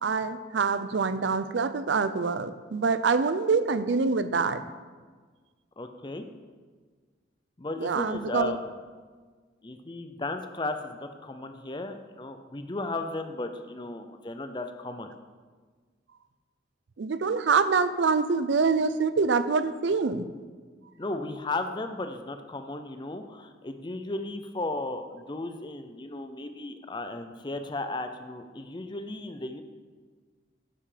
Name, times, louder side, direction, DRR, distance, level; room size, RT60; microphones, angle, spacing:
voice 1, 0.0-4.6 7.8-8.5 17.0-20.3, right 4 dB, 65° right, 13 dB, 0.5 m, -25 dB
voice 2, 5.8-6.2 7.6-8.7 9.6-15.1 21.0-29.6, left 2 dB, 25° left, 7 dB, 0.5 m, -35 dB
11.0 x 5.6 x 5.0 m, 1.5 s
head